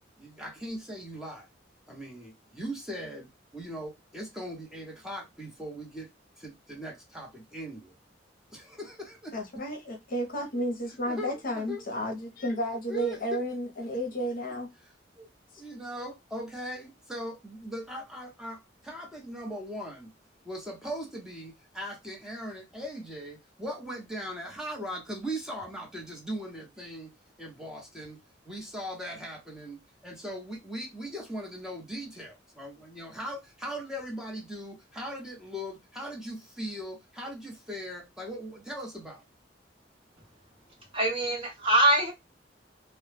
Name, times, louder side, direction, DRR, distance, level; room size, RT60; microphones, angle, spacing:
voice 1, 0.2-1.5 1.9-6.1 6.4-7.9 8.5-9.6 11.1-11.8 12.9-13.4 14.8-15.3 15.6-20.1 20.4-39.2, equal, 5° right, 0.7 m, -39 dB
voice 2, 9.3-14.7, equal, 50° left, 0.7 m, -32 dB
voice 3, 40.9-42.1, right 1 dB, 30° right, 1.0 m, -23 dB
2.1 x 2.0 x 3.2 m
head